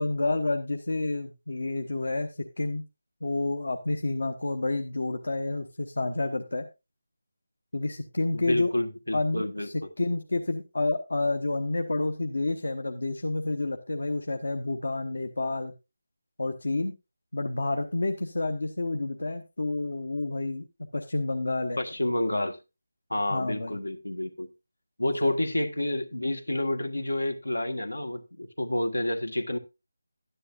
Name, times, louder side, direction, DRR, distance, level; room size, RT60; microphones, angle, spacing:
voice 1, 0.0-2.9 3.2-6.7 7.7-8.7 9.1-15.7 16.4-16.9 17.3-20.6 20.9-21.8 23.3-23.8 25.2-25.3, left 2 dB, 70° left, 1.0 m, -29 dB
voice 2, 8.3-9.9 21.8-22.6 23.1-24.5 25.0-29.6, left 1 dB, 85° left, 1.5 m, -29 dB
12.5 x 10.0 x 2.5 m
figure-of-eight pair, 160°, 0 cm